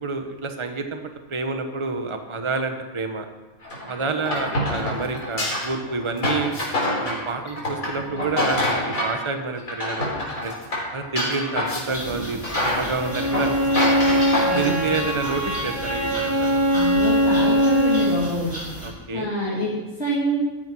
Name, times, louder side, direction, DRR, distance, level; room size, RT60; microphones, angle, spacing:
voice 1, 0.0-3.3 3.9-6.6 7.0-10.1 10.4-10.5 10.9-14.1 14.5-16.6 18.8-19.3, right 4 dB, 25° right, 6 dB, 1.2 m, -28 dB
sound 1, 3.6-9.2 9.6-12.1 12.4-14.7, left 1 dB, 90° left, 4.6 m, -26 dB
sound 2, 11.9-18.9, equal, 40° right, 6.4 m, -35 dB
Bowed string instrument, 12.9-18.3, equal, 55° right, 6.0 m, -21 dB
voice 2, 14.4-14.9 16.7-18.5 19.1-20.4, equal, 50° left, -7 dB, 3.0 m, -26 dB
15.5 x 14.0 x 4.8 m, 1.1 s
omnidirectional pair, 1.4 m